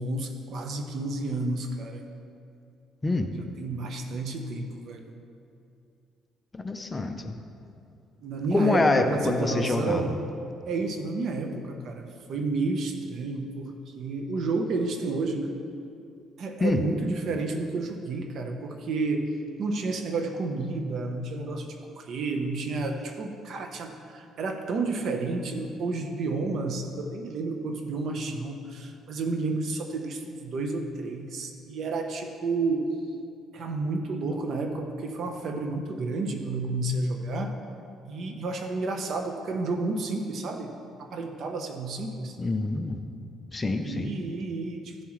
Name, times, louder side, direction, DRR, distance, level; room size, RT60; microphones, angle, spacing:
voice 1, 0.0-2.1 3.3-5.2 8.2-10.2 10.7-15.5 16.4-19.3 19.6-32.9 33.5-37.5 38.1-40.7 41.0-42.4 43.8-45.0, right 3 dB, 55° right, 5 dB, 0.9 m, -31 dB
voice 2, 6.5-7.4 8.5-10.0 16.6-16.8 42.4-43.0 43.5-44.1, left 3 dB, 20° left, 6 dB, 0.6 m, -26 dB
14.0 x 7.2 x 3.2 m, 2.5 s
cardioid pair, 125°, 0 cm